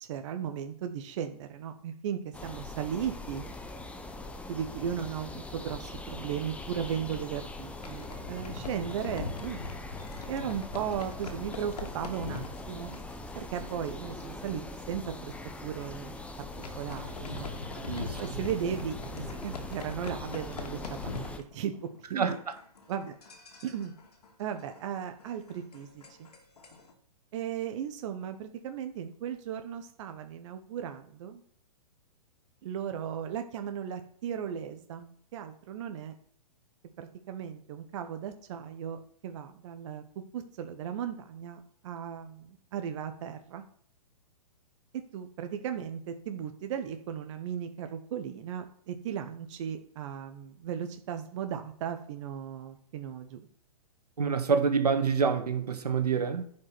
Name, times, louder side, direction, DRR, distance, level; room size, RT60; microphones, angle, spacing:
voice 1, 0.0-3.4 4.5-9.6 10.3-12.9 13.3-15.3 15.6-16.1 16.8-17.6 18.2-21.1 21.5-22.4 22.9-23.1 23.6-23.9 24.4-26.0 27.3-31.4 32.6-36.1 37.0-43.6 44.9-53.4, right 8 dB, 50° right, 1.2 m, -36 dB
sound 1, 2.3-21.4, left 2 dB, 5° left, 0.9 m, -42 dB
sound 2, 7.6-13.9 14.2-14.5 14.8-14.9 15.4-15.6 16.2-22.0 22.2-26.9, left 4 dB, 85° left, 2.7 m, -42 dB
voice 2, 17.9-18.4 22.2-22.3 54.2-56.4, right 5 dB, 90° right, 1.8 m, -27 dB
10.5 x 5.6 x 6.1 m
hypercardioid pair, 135°, 20 cm